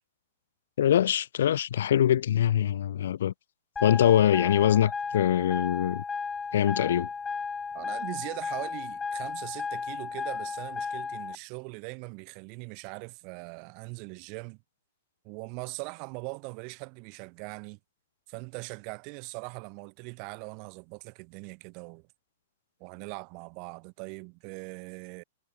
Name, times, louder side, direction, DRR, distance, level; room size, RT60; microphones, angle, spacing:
voice 1, 0.8-3.3 3.8-6.0 6.5-7.1, left 10 dB, 70° left, 0.6 m, -23 dB
sound 1, 3.8-11.4, left 5 dB, 15° left, 1.4 m, -34 dB
voice 2, 7.7-14.6 15.2-17.8 18.3-22.1 22.8-25.2, right 36 dB, 40° right, 6.6 m, -41 dB
hypercardioid pair, 130°, 0 cm